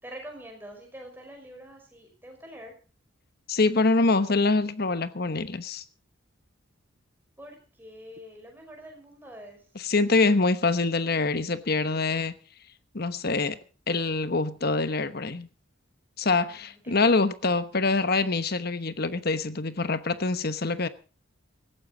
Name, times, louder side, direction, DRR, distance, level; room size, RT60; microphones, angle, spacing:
voice 1, 0.0-2.7 7.4-9.6 16.5-16.9, equal, 10° right, 5.4 m, -45 dB
voice 2, 3.5-5.8 9.7-12.3 12.9-13.6 13.9-15.5 16.2-20.9, left 3 dB, 50° left, 1.1 m, -25 dB
18.0 x 15.5 x 3.9 m
head